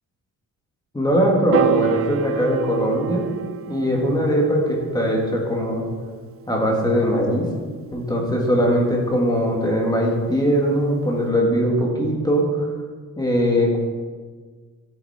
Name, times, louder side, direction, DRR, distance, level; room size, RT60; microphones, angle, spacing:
voice 1, 0.9-3.2 3.7-5.8 6.5-7.5 7.9-12.7 13.2-13.8, equal, 10° left, -1 dB, 2.1 m, -20 dB
Piano, 1.5-7.9, right 9 dB, 40° right, 0.4 m, -29 dB
13.5 x 8.3 x 4.3 m, 1.5 s
cardioid pair, 155°, 34 cm